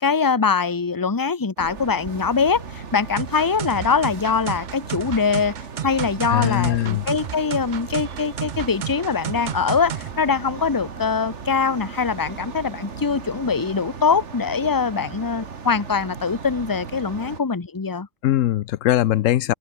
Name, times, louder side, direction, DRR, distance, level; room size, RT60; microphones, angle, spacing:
voice 1, 0.0-5.6 5.8-18.1, left 5 dB, 20° left, 0.9 m, -23 dB
sound 1, 1.6-17.4, right 5 dB, 70° right, 1.9 m, -37 dB
sound 2, 3.2-10.1, right 8 dB, 50° right, 0.6 m, -32 dB
voice 2, 6.3-7.0 18.2-19.5, left 13 dB, 90° left, 1.0 m, -20 dB
omnidirectional pair, 1.3 m